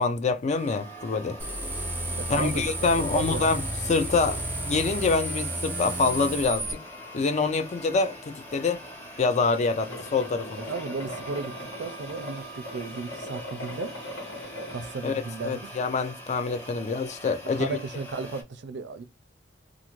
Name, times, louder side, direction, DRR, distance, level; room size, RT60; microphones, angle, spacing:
voice 1, 0.0-1.4 2.3-4.4 4.6-6.8 7.1-8.8 9.2-10.6 15.0-17.8, left 4 dB, 40° left, 0.4 m, -26 dB
sound 1, 0.5-18.4, right 1 dB, 10° left, 1.0 m, -44 dB
sound 2, 1.4-6.7, right 1 dB, 10° right, 0.6 m, -32 dB
voice 2, 2.2-3.5 10.6-13.9 14.7-15.6 17.5-19.0, right 4 dB, 65° right, 0.4 m, -35 dB
sound 3, 9.8-14.9, left 1 dB, 75° left, 1.5 m, -39 dB
2.4 x 2.4 x 3.0 m
head